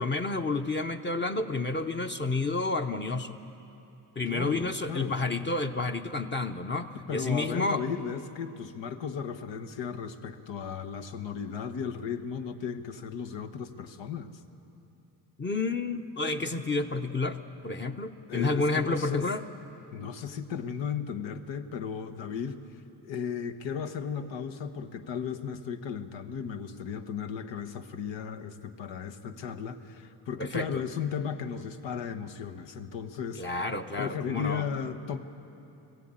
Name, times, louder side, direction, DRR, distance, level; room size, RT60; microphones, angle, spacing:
voice 1, 0.0-3.4 4.2-7.8 15.4-19.4 30.4-30.8 33.4-34.6, left 3 dB, 25° left, 5 dB, 0.8 m, -30 dB
voice 2, 4.3-5.2 6.9-14.3 18.3-19.3 19.9-22.6 23.0-33.4 34.0-35.2, left 7 dB, 85° left, 6 dB, 1.2 m, -35 dB
20.0 x 15.0 x 8.9 m, 2.9 s
cardioid pair, 80°, 43 cm